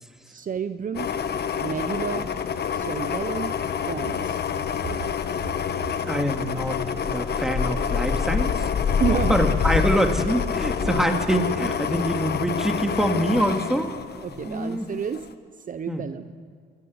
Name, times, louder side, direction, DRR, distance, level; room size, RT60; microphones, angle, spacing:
voice 1, 0.3-1.1 1.6-2.3 2.7-3.6 3.9-4.4 9.0-9.4 10.8-11.0 14.2-15.3 15.6-16.3, right 7 dB, 40° right, 10 dB, 0.8 m, -30 dB
sound 1, 0.9-14.7 15.1-15.2, left 7 dB, 55° left, 1.3 m, -27 dB
voice 2, 6.1-8.7 9.3-13.9 14.5-14.9 15.9-16.0, equal, ahead, 4 dB, 2.4 m, -25 dB
27.5 x 14.0 x 9.7 m, 2.1 s
cardioid pair, 90°, 20 cm